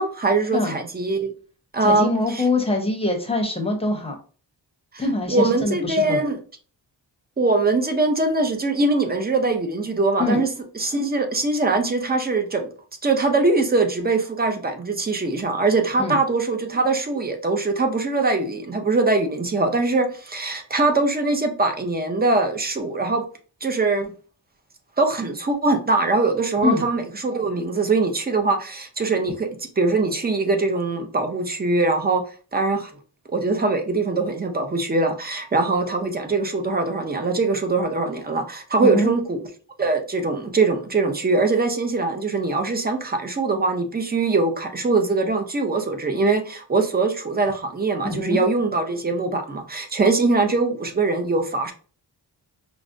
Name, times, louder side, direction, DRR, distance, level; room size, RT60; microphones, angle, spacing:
voice 1, 0.0-1.3 1.7-2.1 5.3-6.4 7.4-10.5 10.8-12.7 13.0-23.3 23.6-24.1 25.0-29.5 29.8-32.2 32.5-32.9 33.3-39.4 39.8-51.7, right 3 dB, 25° right, 0.5 m, -22 dB
voice 2, 1.8-4.1 5.0-6.2 10.2-10.4 16.0-16.2 26.6-26.9 38.8-39.1 48.0-48.4, left 2 dB, 15° left, 0.8 m, -24 dB
4.7 x 2.1 x 2.5 m
wide cardioid pair, 105°, 42 cm